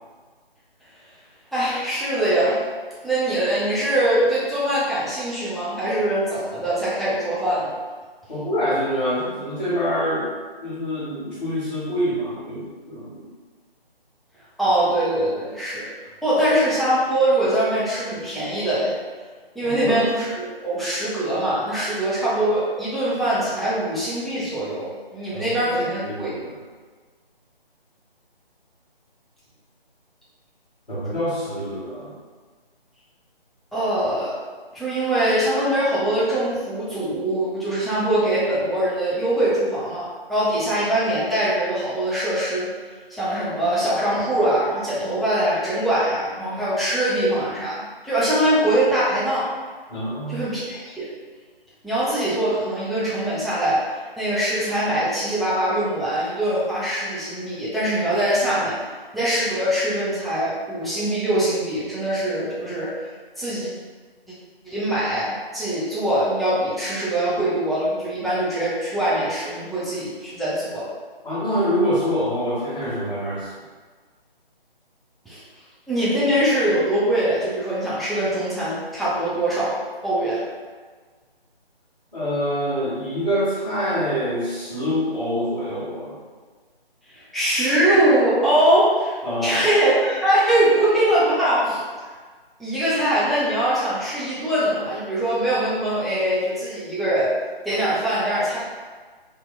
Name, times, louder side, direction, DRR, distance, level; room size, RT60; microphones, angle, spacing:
voice 1, 1.5-2.6 3.0-7.7 14.6-15.9 16.2-18.9 19.5-26.3 33.7-34.3 34.7-42.7 43.1-49.5 50.3-51.1 51.8-58.8 59.1-63.1 63.4-63.7 64.6-70.9 75.3-75.4 75.9-79.8 80.0-80.4 87.1-91.8 92.6-97.3 97.6-98.6, right 1 dB, ahead, -12 dB, 0.4 m, -22 dB
voice 2, 8.3-10.3 10.6-13.2 19.6-20.0 25.3-25.7 26.0-26.6 30.9-32.1 49.9-50.5 71.2-73.5 82.1-86.2 89.2-89.6, equal, 45° left, -12 dB, 1.1 m, -25 dB
2.7 x 2.4 x 3.1 m, 1.5 s
hypercardioid pair, 180°, 30 cm